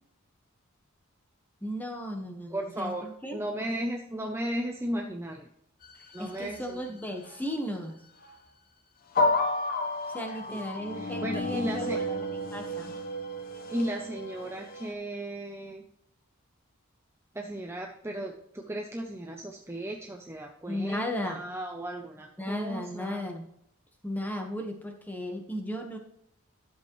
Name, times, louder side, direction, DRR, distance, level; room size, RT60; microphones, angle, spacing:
voice 1, 1.6-3.4 6.0-8.0 10.1-12.3 12.5-13.0 20.7-21.4 22.4-23.5 24.0-26.0, left 1 dB, 10° left, 2 dB, 1.4 m, -35 dB
voice 2, 2.5-5.5 6.1-6.8 10.3-10.6 10.9-12.0 13.7-15.8 17.3-23.2, right 1 dB, 10° right, 2 dB, 0.6 m, -35 dB
sound 1, 5.8-6.8 7.2-7.4 8.2-8.4 9.1-14.9, left 2 dB, 45° left, 1.1 m, -32 dB
11.5 x 7.7 x 3.2 m, 0.73 s
head